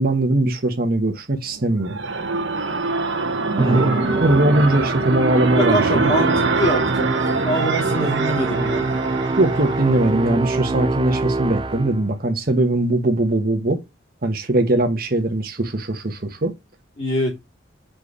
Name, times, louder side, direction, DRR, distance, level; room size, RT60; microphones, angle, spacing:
voice 1, 0.0-2.0 3.7-3.8 4.1-6.1 8.6-8.7 9.4-13.8 14.2-16.5, right 1 dB, 50° right, 1.1 m, -20 dB
sound 1, 1.6-10.4, right 3 dB, 75° right, 1.0 m, -24 dB
voice 2, 3.6-4.0 5.6-7.2 7.4-8.9 17.0-17.4, equal, 35° left, 2.6 m, -24 dB
Musical instrument, 3.6-12.1, right 3 dB, 25° right, 0.3 m, -25 dB
5.1 x 4.6 x 4.9 m
head